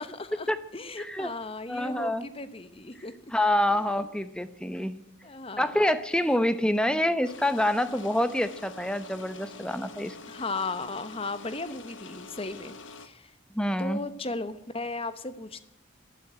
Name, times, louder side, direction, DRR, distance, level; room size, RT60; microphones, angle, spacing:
voice 1, 0.0-3.1 3.7-3.9 5.2-5.9 10.3-13.3 13.8-15.6, left 3 dB, 25° left, 12 dB, 1.0 m, -36 dB
voice 2, 1.0-1.3 1.7-2.3 3.3-5.0 5.6-10.2 13.5-14.0, left 1 dB, 5° left, 12 dB, 0.8 m, -26 dB
sound 1, 7.2-13.1, left 3 dB, 65° left, 1.3 m, -46 dB
13.0 x 11.5 x 9.2 m, 0.85 s
head